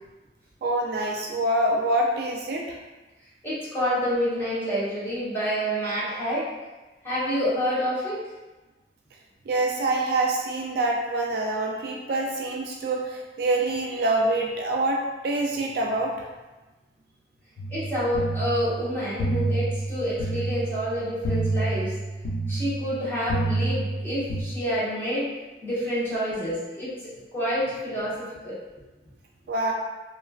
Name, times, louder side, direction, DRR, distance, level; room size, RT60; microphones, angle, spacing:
voice 1, 0.6-2.8 9.5-16.3 29.5-29.7, right 2 dB, 55° right, 0 dB, 0.3 m, -26 dB
voice 2, 3.4-6.5 7.0-8.2 17.7-21.9 22.5-25.3 25.6-26.9 27.3-28.2 28.4-28.6, equal, 10° left, -11 dB, 1.0 m, -28 dB
sound 1, 17.6-24.4, right 2 dB, 65° left, 0.4 m, -28 dB
3.0 x 2.4 x 2.3 m, 1.1 s
head